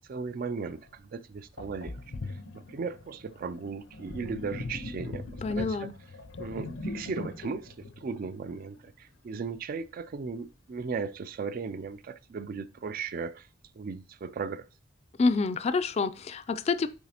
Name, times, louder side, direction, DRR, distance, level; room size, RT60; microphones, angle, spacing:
voice 1, 0.0-2.0 2.2-5.9 6.4-13.5 13.8-14.7, right 5 dB, 45° right, 0.3 m, -37 dB
Sink (filling or washing), 0.9-1.0 1.6-8.9, left 2 dB, 75° left, 0.7 m, -40 dB
voice 2, 5.4-5.9 15.2-16.9, left 4 dB, 35° left, 0.3 m, -27 dB
7.1 x 4.7 x 2.9 m
head